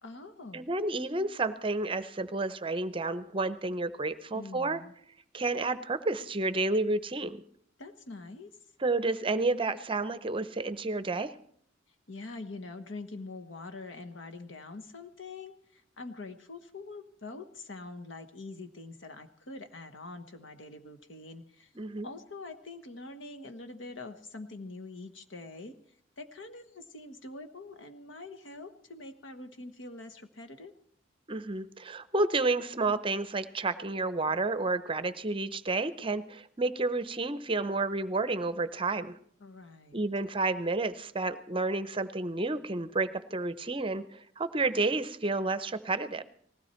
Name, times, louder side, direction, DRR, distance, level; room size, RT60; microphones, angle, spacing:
voice 1, 0.0-0.7 4.3-4.9 7.8-8.6 12.1-25.8 26.2-30.7 39.4-40.0, left 3 dB, 85° left, 9 dB, 1.3 m, -44 dB
voice 2, 0.5-4.8 5.3-7.4 8.8-11.3 21.8-22.1 31.3-39.2 39.9-46.2, right 3 dB, 30° right, 13 dB, 0.7 m, -30 dB
19.5 x 16.0 x 4.4 m, 0.63 s
head